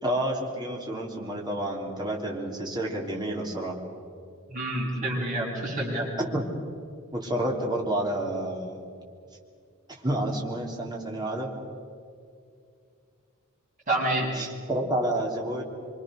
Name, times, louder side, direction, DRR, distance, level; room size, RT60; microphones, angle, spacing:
voice 1, 0.0-3.7 6.3-6.4 7.1-8.8 10.0-11.5 14.3-15.6, right 1 dB, 20° right, -1 dB, 3.3 m, -29 dB
voice 2, 4.5-6.1 13.9-14.3, right 1 dB, 40° right, -4 dB, 7.2 m, -28 dB
25.0 x 25.0 x 6.5 m, 2.4 s
head